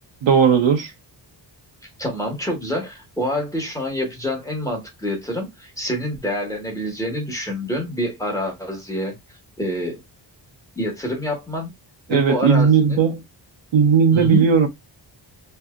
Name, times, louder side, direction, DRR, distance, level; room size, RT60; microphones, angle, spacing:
voice 1, 0.2-0.9 12.1-13.2 13.7-14.7, right 6 dB, 90° right, 0.9 m, -16 dB
voice 2, 2.0-9.1 9.6-10.0 10.8-11.7 12.1-13.0 14.1-14.5, left 1 dB, 10° left, 1.0 m, -27 dB
3.2 x 2.6 x 2.3 m
wide cardioid pair, 175°, 44 cm